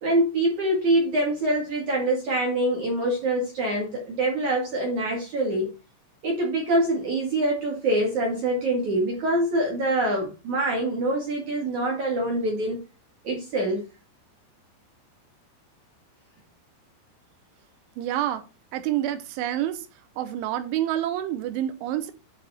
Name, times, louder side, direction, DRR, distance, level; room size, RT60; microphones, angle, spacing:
voice 1, 0.0-5.7 6.2-12.8 13.2-13.9, right 1 dB, 55° right, 2.4 m, -25 dB
voice 2, 18.0-18.4 18.7-19.9 20.2-22.1, right 12 dB, 80° right, 3.0 m, -28 dB
11.5 x 4.6 x 4.1 m
omnidirectional pair, 5.8 m